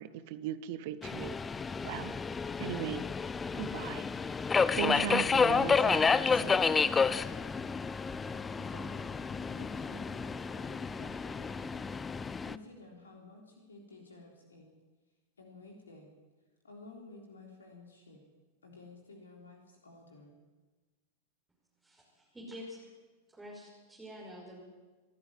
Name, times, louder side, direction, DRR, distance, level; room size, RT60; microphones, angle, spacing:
voice 1, 0.0-1.4 1.8-2.1 2.6-3.0 3.5-4.1 4.8-6.5, right 11 dB, 50° right, 14 dB, 1.1 m, -38 dB
Subway metro underground, 1.0-12.6, left 5 dB, 15° left, 0.7 m, -30 dB
voice 2, 8.6-9.3 9.6-11.8 12.4-14.7 15.4-16.1 16.6-18.2 18.6-20.4, left 2 dB, 75° left, 1 dB, 3.5 m, -53 dB
voice 3, 21.8-22.8 23.3-24.6, equal, 10° right, -4 dB, 5.7 m, -47 dB
26.5 x 12.0 x 9.4 m, 1.3 s
figure-of-eight pair, 90°, 0 cm